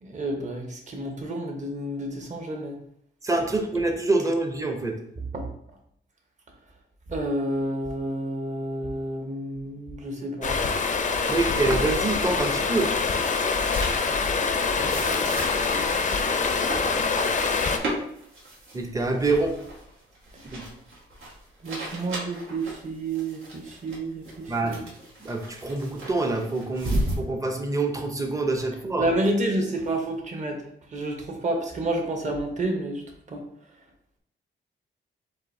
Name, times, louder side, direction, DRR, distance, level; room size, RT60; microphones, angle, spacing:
voice 1, 0.0-2.8 5.3-5.5 7.1-10.6 14.8-16.0 21.6-24.8 29.0-30.6 30.9-33.4, right 1 dB, 35° right, 2 dB, 0.9 m, -30 dB
voice 2, 3.2-4.9 11.3-12.9 18.7-19.5 20.5-20.6 24.5-24.8 25.2-29.1, right 2 dB, 15° right, 4 dB, 0.7 m, -26 dB
Stream, 10.4-17.8, left 4 dB, 40° left, 0.5 m, -25 dB
sound 1, 13.7-14.2 14.8-27.2, right 1 dB, 85° right, 1.7 m, -35 dB
7.5 x 2.6 x 2.6 m, 0.70 s
wide cardioid pair, 135°, 20 cm